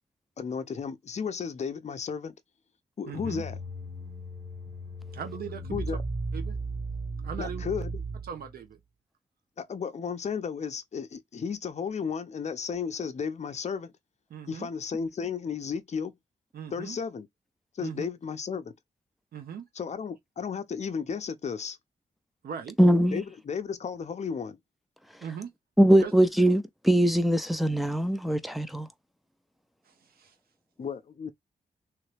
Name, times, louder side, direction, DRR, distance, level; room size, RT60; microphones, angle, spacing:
voice 1, 0.4-2.3 3.0-3.6 5.7-6.0 7.4-8.0 9.6-13.9 14.5-16.1 16.7-17.3 17.7-18.7 19.8-21.8 23.1-24.6 30.8-31.3, left 6 dB, 45° left, 0.6 m, -34 dB
sound 1, 3.1-8.6, right 2 dB, 50° right, 1.9 m, -36 dB
voice 2, 3.1-3.4 5.1-5.9 6.3-6.6 7.2-7.6 8.2-8.8 14.3-14.7 16.5-17.0 17.8-18.1 19.3-19.6 22.4-22.8 25.2-25.5 26.0-26.1 29.8-30.4, right 7 dB, 85° right, 0.7 m, -39 dB
voice 3, 22.8-23.2 25.8-28.9, right 1 dB, ahead, 0.5 m, -22 dB
3.1 x 2.8 x 3.3 m
cardioid pair, 85°, 15 cm